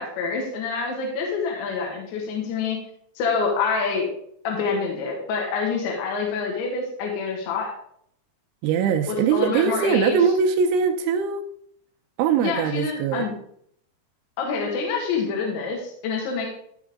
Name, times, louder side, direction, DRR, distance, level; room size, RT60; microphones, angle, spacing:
voice 1, 0.0-2.8 3.2-4.1 4.5-7.7 9.1-10.2 12.4-13.3 14.4-16.5, left 5 dB, 70° left, -1 dB, 3.9 m, -26 dB
voice 2, 8.6-11.5 12.2-13.3, right 7 dB, 80° right, 4 dB, 2.9 m, -21 dB
14.0 x 6.1 x 3.6 m, 0.66 s
omnidirectional pair, 5.7 m